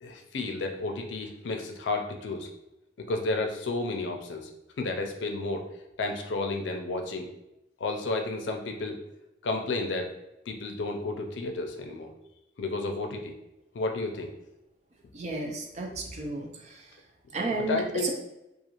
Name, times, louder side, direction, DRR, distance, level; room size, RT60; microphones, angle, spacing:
voice 1, 0.0-2.5 3.0-4.5 4.8-5.7 6.0-7.3 7.8-9.0 9.4-10.1 10.5-12.1 12.6-13.3 13.7-14.3 17.3-18.1, left 2 dB, 90° left, 4 dB, 0.4 m, -32 dB
voice 2, 15.1-17.0 17.3-18.1, right 2 dB, 40° right, 1 dB, 0.4 m, -33 dB
2.4 x 2.4 x 2.9 m, 0.92 s
head